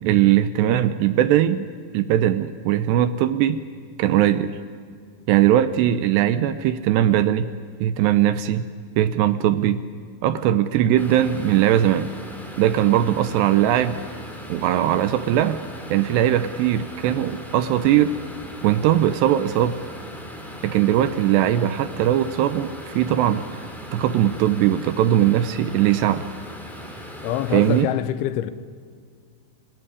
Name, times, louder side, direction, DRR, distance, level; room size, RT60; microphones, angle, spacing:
voice 1, 0.0-1.7 1.9-3.6 4.0-4.6 5.3-7.5 7.8-8.7 9.0-9.8 10.2-12.1 12.6-14.0 14.5-15.6 15.9-18.1 18.6-19.8 20.6-23.5 23.9-26.2 27.5-27.9, right 11 dB, 75° right, 2.7 m, -20 dB
sound 1, 11.0-27.8, equal, ahead, 3.4 m, -38 dB
voice 2, 27.2-28.5, left 12 dB, 85° left, 3.3 m, -25 dB
26.5 x 22.0 x 9.9 m
omnidirectional pair, 5.4 m